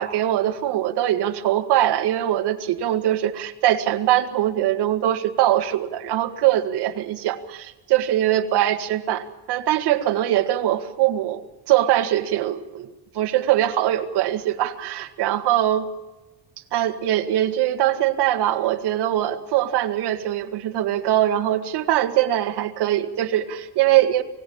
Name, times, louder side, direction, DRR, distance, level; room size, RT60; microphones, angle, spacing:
voice 1, 0.0-11.4 11.7-15.8 16.7-24.2, right 12 dB, 75° right, 5 dB, 2.0 m, -22 dB
24.5 x 17.5 x 8.7 m, 1.1 s
cardioid pair, 160°, 40 cm